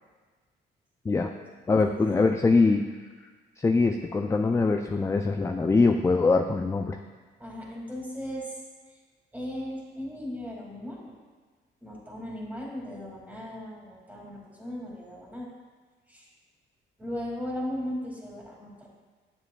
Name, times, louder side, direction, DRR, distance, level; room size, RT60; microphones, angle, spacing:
voice 1, 1.7-2.9 3.6-7.0, left 3 dB, 15° left, 5 dB, 0.3 m, -23 dB
voice 2, 7.4-8.6 8.9-9.0 9.3-11.1 11.8-15.5 16.1-16.3 17.0-18.9, equal, 10° right, -3 dB, 2.2 m, -37 dB
9.1 x 7.1 x 2.2 m, 1.4 s
cardioid pair, 90°, 20 cm